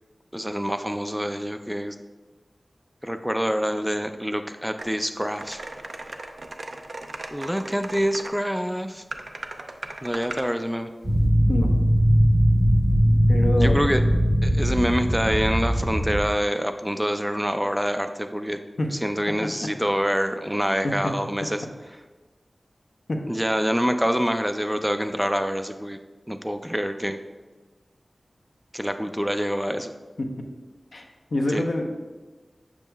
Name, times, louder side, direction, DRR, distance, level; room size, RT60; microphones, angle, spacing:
voice 1, 0.3-2.0 3.0-5.6 7.3-9.0 10.0-10.9 13.6-14.0 14.4-18.6 19.0-21.6 23.3-26.0 26.3-27.2 28.7-29.9 31.5-31.6, equal, 5° right, 7 dB, 0.3 m, -26 dB
sound 1, 4.8-4.9 5.4-8.3 9.1-10.5, right 2 dB, 65° right, 0.5 m, -37 dB
sound 2, 11.0-16.3, equal, 45° right, 0.9 m, -20 dB
voice 2, 13.3-13.8 18.8-18.9 20.8-20.9 23.1-23.2 30.2-30.3 30.9-31.1 31.3-31.9, left 1 dB, 75° left, 2 dB, 0.7 m, -25 dB
7.2 x 6.0 x 2.2 m, 1.3 s
wide cardioid pair, 55°, 0 cm